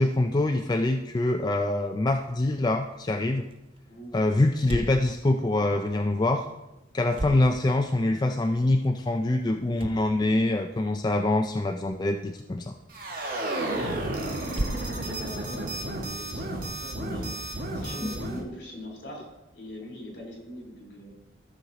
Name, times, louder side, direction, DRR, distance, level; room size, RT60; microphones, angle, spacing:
voice 1, 0.0-3.5 4.1-6.4 6.9-12.7 18.0-18.1, left 2 dB, 20° left, 5 dB, 0.3 m, -25 dB
sound 1, 2.9-16.5, right 1 dB, 30° right, 0.6 m, -42 dB
sound 2, 12.9-18.4, right 1 dB, 50° right, 1.7 m, -32 dB
voice 2, 14.6-19.3 19.5-21.1, left 1 dB, 60° left, -1 dB, 3.3 m, -42 dB
13.0 x 6.3 x 3.9 m, 1.0 s
head